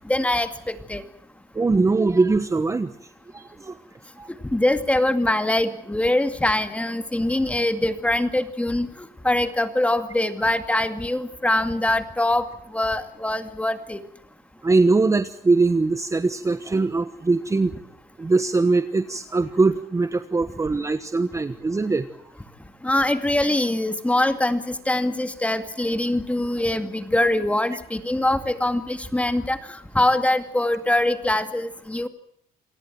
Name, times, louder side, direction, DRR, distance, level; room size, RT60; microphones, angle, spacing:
voice 1, 0.1-1.0 4.5-8.9 9.2-12.5 12.7-14.0 22.8-32.1, left 1 dB, 10° left, 9 dB, 2.3 m, -23 dB
voice 2, 1.5-2.9 3.3-3.8 4.2-4.3 14.6-17.7 18.2-22.1, right 3 dB, 20° right, 11 dB, 1.2 m, -21 dB
28.0 x 18.5 x 7.7 m, 0.68 s
cardioid pair, 110°, 17 cm